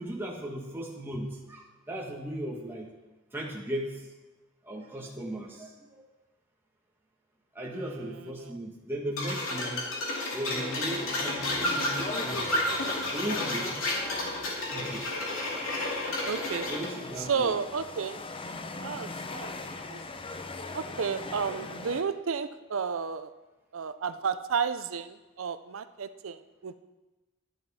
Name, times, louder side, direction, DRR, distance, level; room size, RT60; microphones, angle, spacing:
voice 1, 0.0-2.9 3.3-4.0 4.6-6.0 7.5-9.9 10.3-12.4 13.1-13.8 14.7-15.1 16.7-17.6, right 1 dB, 10° right, -2 dB, 1.4 m, -37 dB
voice 2, 7.7-8.1 8.4-8.6 16.2-16.7 17.2-18.2 18.8-20.0 20.7-23.3 23.7-26.7, right 6 dB, 75° right, 11 dB, 0.5 m, -32 dB
sound 1, 9.2-16.9, left 1 dB, 80° left, 2.8 m, -31 dB
sound 2, 10.5-22.0, left 3 dB, 25° left, 0.7 m, -41 dB
10.5 x 10.5 x 4.2 m, 1.1 s
head